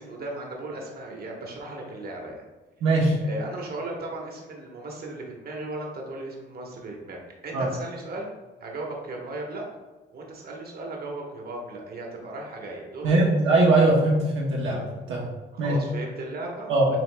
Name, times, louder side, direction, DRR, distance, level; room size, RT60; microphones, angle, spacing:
voice 1, 0.0-2.4 3.2-7.2 7.4-8.3 8.6-9.6 10.1-13.3 15.5-17.0, right 2 dB, 50° right, -1 dB, 1.2 m, -36 dB
voice 2, 2.8-3.2 7.5-7.7 13.0-15.3 15.6-15.8 16.7-17.0, right 2 dB, 80° right, -3 dB, 0.9 m, -21 dB
7.5 x 2.9 x 2.2 m, 1.2 s
cardioid pair, 90°, 20 cm